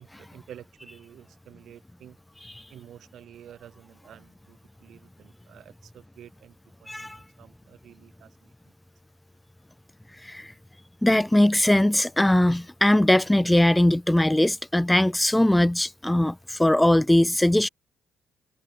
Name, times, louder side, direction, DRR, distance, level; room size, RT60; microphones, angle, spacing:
voice 1, 0.0-2.2 2.7-6.5 6.8-7.1 7.4-8.5, right 10 dB, 65° right, 5.9 m, -49 dB
voice 2, 6.9-7.2 10.2-10.5 11.0-17.7, left 1 dB, 10° left, 0.8 m, -20 dB
hypercardioid pair, 50°, 0 cm